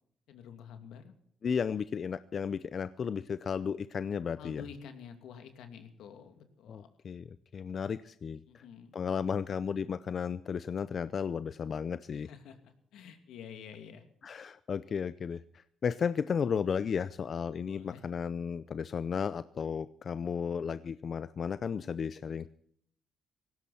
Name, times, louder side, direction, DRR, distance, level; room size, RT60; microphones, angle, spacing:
voice 1, 0.3-1.1 4.4-6.9 8.5-8.9 12.1-14.0 17.7-18.1, left 7 dB, 85° left, 7 dB, 2.6 m, -49 dB
voice 2, 1.4-4.6 6.7-7.3 7.5-8.6 8.9-12.3 14.2-22.5, left 6 dB, 50° left, 14 dB, 0.6 m, -34 dB
18.5 x 16.5 x 4.3 m, 0.64 s
cardioid pair, 90°, 0 cm